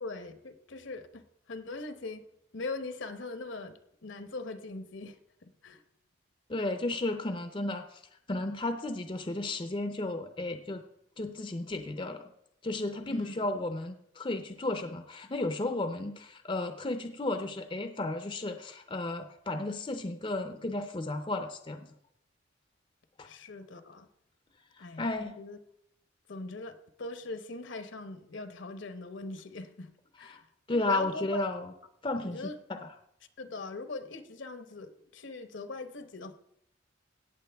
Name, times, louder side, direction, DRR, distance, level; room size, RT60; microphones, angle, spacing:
voice 1, 0.0-2.2 2.5-5.8 13.1-13.4 23.2-24.1 24.8-25.6 26.3-29.9 30.2-30.4 30.7-31.4 32.2-32.6 33.4-36.3, left 3 dB, 65° left, 10 dB, 0.9 m, -41 dB
voice 2, 6.5-8.0 8.3-10.8 11.2-12.2 12.6-21.9 23.2-23.3 24.8-25.3 30.3-30.4 30.7-31.7 32.0-32.4 32.7-32.8, left 2 dB, 25° left, 7 dB, 0.5 m, -33 dB
17.5 x 7.4 x 3.4 m, 0.75 s
head